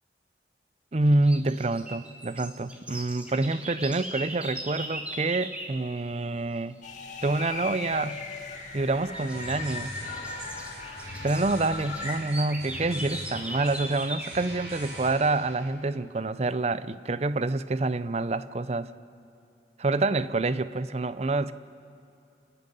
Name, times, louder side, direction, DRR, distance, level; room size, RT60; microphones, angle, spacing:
voice 1, 0.9-6.8 7.2-8.2 8.7-9.9 11.2-18.9 19.8-21.5, right 2 dB, 35° right, 0.5 m, -27 dB
sound 1, 1.1-5.8 8.0-8.4 8.8-14.4, right 1 dB, 5° right, 1.8 m, -40 dB
sound 2, 6.8-12.2, left 4 dB, 40° left, 2.0 m, -38 dB
sound 3, 9.1-15.6, right 1 dB, 65° right, 5.1 m, -42 dB
27.5 x 10.5 x 9.9 m
head